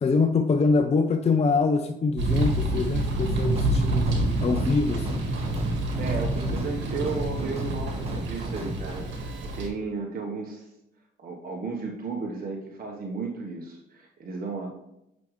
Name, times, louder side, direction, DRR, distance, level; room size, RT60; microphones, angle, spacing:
voice 1, 0.0-4.1 4.4-5.2, left 4 dB, 30° left, 7 dB, 0.5 m, -24 dB
sound 1, 2.2-9.7, right 1 dB, 70° right, 1.7 m, -27 dB
sound 2, 3.3-9.0, right 1 dB, 30° right, 1.5 m, -36 dB
voice 2, 6.0-10.7 11.2-14.7, right 4 dB, 45° right, 0 dB, 1.2 m, -34 dB
8.2 x 6.2 x 3.2 m, 0.84 s
cardioid pair, 90°, 20 cm